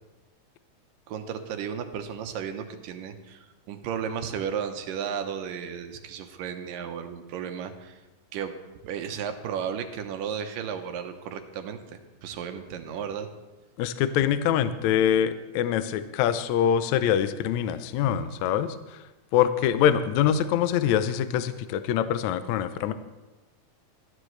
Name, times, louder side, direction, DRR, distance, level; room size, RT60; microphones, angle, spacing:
voice 1, 1.1-8.0 8.3-8.5 8.8-11.8 12.2-13.3, right 7 dB, 75° right, 6 dB, 2.6 m, -34 dB
voice 2, 13.8-19.0 19.3-22.9, left 9 dB, 75° left, 11 dB, 1.7 m, -24 dB
19.0 x 13.5 x 3.2 m, 1.1 s
omnidirectional pair, 4.0 m